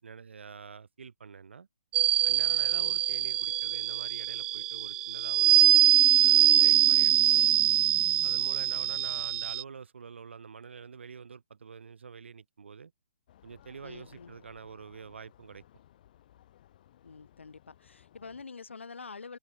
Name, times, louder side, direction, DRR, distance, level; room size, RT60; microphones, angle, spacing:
voice 1, 0.0-1.7 2.2-5.7 6.2-7.5 8.2-12.9 13.4-15.6, right 6 dB, 75° right, 6.7 m, -47 dB
sound 1, 1.9-9.6, right 12 dB, 15° right, 0.3 m, -23 dB
voice 2, 2.7-3.0 6.7-7.0 8.7-9.0 13.8-14.4 17.0-19.4, left 4 dB, 90° left, 6.8 m, -47 dB
sound 2, 13.3-18.5, left 12 dB, 45° left, 5.5 m, -60 dB
hypercardioid pair, 150°, 6 cm